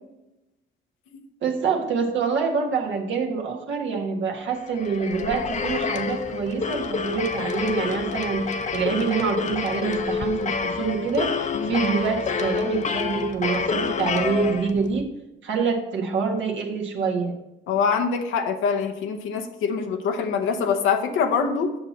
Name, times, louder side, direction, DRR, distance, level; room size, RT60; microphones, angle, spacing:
voice 1, 1.4-15.1 15.4-17.3, right 5 dB, 70° right, 0 dB, 1.4 m, -26 dB
sound 1, 4.6-15.0, left 5 dB, 40° left, 0.7 m, -28 dB
voice 2, 17.7-21.8, left 6 dB, 90° left, 4 dB, 0.9 m, -24 dB
7.7 x 5.8 x 4.2 m, 0.96 s
cardioid pair, 90°, 20 cm